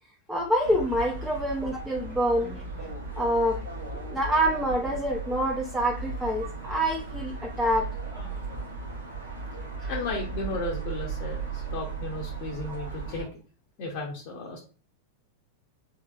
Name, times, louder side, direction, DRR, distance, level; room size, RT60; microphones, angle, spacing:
voice 1, 0.3-3.6 4.1-8.3 9.7-9.9, equal, 5° right, -1 dB, 0.5 m, -27 dB
sound 1, 0.6-13.2, right 4 dB, 90° right, 1.1 m, -36 dB
voice 2, 9.9-13.3 13.8-14.6, left 3 dB, 50° left, 0 dB, 0.7 m, -34 dB
3.6 x 2.8 x 2.3 m, 0.38 s
figure-of-eight pair, 95°, 0 cm